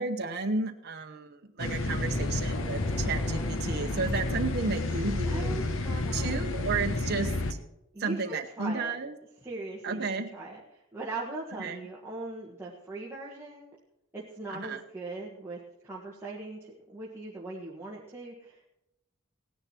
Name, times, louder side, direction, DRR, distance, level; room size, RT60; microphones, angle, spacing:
voice 1, 0.0-5.6 6.1-7.4 8.0-9.2 9.8-10.3 11.6-11.8 14.5-14.8, right 3 dB, 50° right, 3 dB, 0.9 m, -32 dB
sound 1, 1.6-7.5, left 2 dB, 70° left, 1.1 m, -30 dB
sound 2, 1.8-5.7, left 1 dB, 10° left, 0.4 m, -42 dB
voice 2, 5.2-6.5 7.9-8.9 9.4-10.6 10.9-13.8 14.1-18.7, right 2 dB, 10° right, -6 dB, 1.6 m, -40 dB
16.5 x 10.5 x 4.4 m, 0.85 s
head